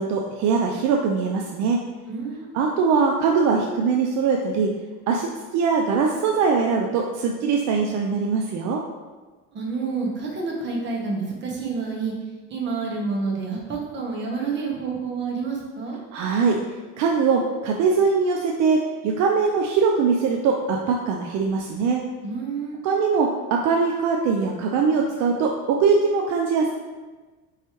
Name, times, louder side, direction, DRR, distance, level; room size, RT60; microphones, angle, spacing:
voice 1, 0.0-1.8 2.5-4.7 5.1-8.8 16.1-16.6 17.0-22.0 22.8-26.7, right 5 dB, 70° right, 1 dB, 0.5 m, -22 dB
voice 2, 2.1-2.5 9.5-12.1 12.5-16.0 22.2-22.8, right 4 dB, 40° right, -2 dB, 1.0 m, -28 dB
4.5 x 3.2 x 2.9 m, 1.3 s
cardioid pair, 120°, 30 cm